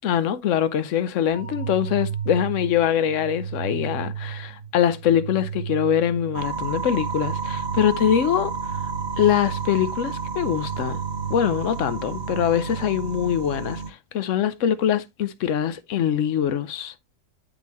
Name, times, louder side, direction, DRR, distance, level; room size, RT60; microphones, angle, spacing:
voice 1, 0.0-8.5 9.2-11.0 11.3-16.9, left 9 dB, 60° left, 0.9 m, -23 dB
sound 1, 1.3-13.2, right 8 dB, 80° right, 2.5 m, -35 dB
sound 2, 6.3-13.9, right 5 dB, 45° right, 0.6 m, -31 dB
10.5 x 3.5 x 3.0 m
omnidirectional pair, 1.7 m